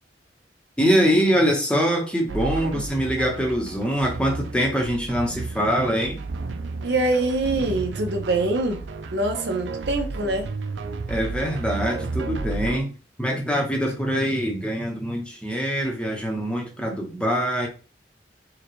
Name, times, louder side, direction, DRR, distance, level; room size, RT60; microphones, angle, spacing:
voice 1, 0.8-6.2 11.1-12.9 13.2-17.7, equal, 5° left, 0.7 m, -23 dB
sound 1, 2.3-12.8, right 3 dB, 90° right, 0.4 m, -32 dB
voice 2, 6.8-10.5, right 2 dB, 65° right, 0.7 m, -24 dB
4.8 x 2.2 x 3.1 m
head